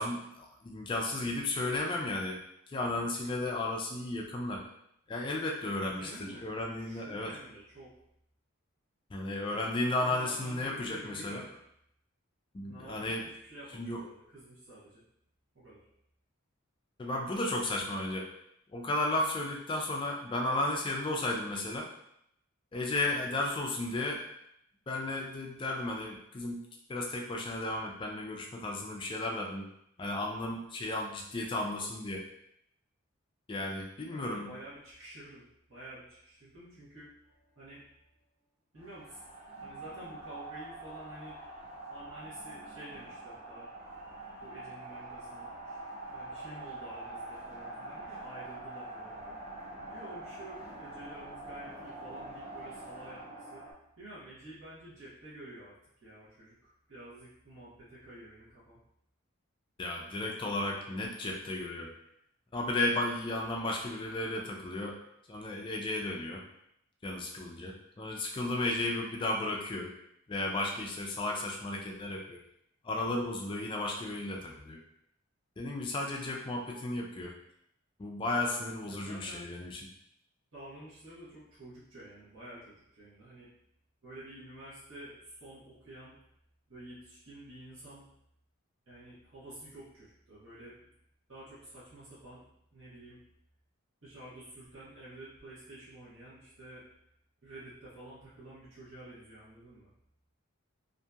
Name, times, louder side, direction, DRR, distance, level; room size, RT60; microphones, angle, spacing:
voice 1, 0.0-2.4 2.7-4.6 5.1-6.1 6.4-7.3 9.1-11.4 12.5-13.3 13.7-14.0 17.0-18.3 18.7-21.9 22.7-24.2 24.9-26.6 26.9-29.7 30.0-32.2 33.5-34.5 59.8-61.9 62.5-65.0 65.3-66.4 67.0-69.9 70.3-72.4 72.8-74.8 75.6-77.3 78.0-79.8, left 2 dB, 25° left, 0 dB, 0.3 m, -34 dB
voice 2, 5.8-7.9 9.8-11.5 12.6-13.2 13.5-15.0 15.5-15.8 34.1-37.1 37.6-37.8 38.7-39.2 39.6-41.4 41.9-43.7 44.4-45.5 46.1-49.4 49.9-53.6 54.0-58.8 78.9-79.5 80.5-83.5 84.0-86.2 86.7-88.0 88.9-90.9 91.3-93.2 94.0-96.8 97.4-99.9, right 1 dB, 65° right, -10 dB, 1.1 m, -50 dB
sound 1, 38.8-53.7, right 2 dB, 30° right, 0.6 m, -45 dB
2.8 x 2.5 x 2.3 m, 0.76 s
head